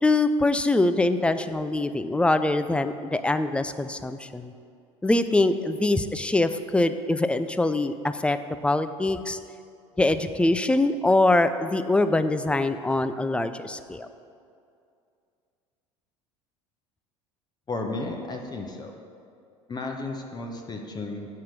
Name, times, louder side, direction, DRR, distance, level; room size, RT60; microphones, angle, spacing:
voice 1, 0.0-4.5 5.0-9.4 10.0-14.1, left 2 dB, 5° left, 11 dB, 0.4 m, -23 dB
voice 2, 17.7-18.9 19.7-21.3, left 2 dB, 25° left, 2 dB, 1.0 m, -33 dB
7.4 x 5.8 x 6.6 m, 2.4 s
figure-of-eight pair, 70°, 17 cm